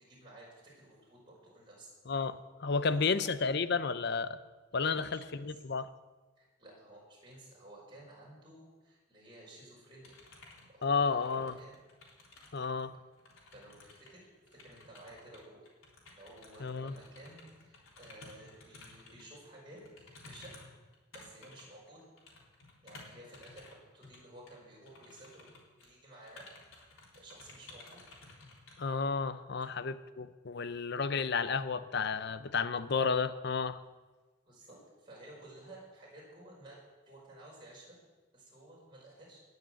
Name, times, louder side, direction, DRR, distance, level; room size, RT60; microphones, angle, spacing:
voice 1, 0.1-1.9 2.7-3.1 4.7-5.6 6.4-10.2 10.7-11.7 13.5-14.3 14.6-15.7 16.1-19.8 20.3-20.6 21.1-22.0 22.8-26.4 27.1-28.0 34.5-36.8 37.1-38.0 38.3-39.4, right 1 dB, 25° right, -4 dB, 5.3 m, -54 dB
voice 2, 2.1-4.4 4.7-5.9 10.8-11.5 12.5-13.0 16.6-16.9 28.8-33.8, left 5 dB, 55° left, 13 dB, 0.6 m, -32 dB
sound 1, 10.0-12.9 13.1-19.4 19.7-23.7 24.0-24.2 24.5-24.6 24.9-25.9 26.2-28.7, left 3 dB, 85° left, 3.6 m, -55 dB
19.0 x 6.7 x 7.7 m, 1.3 s
head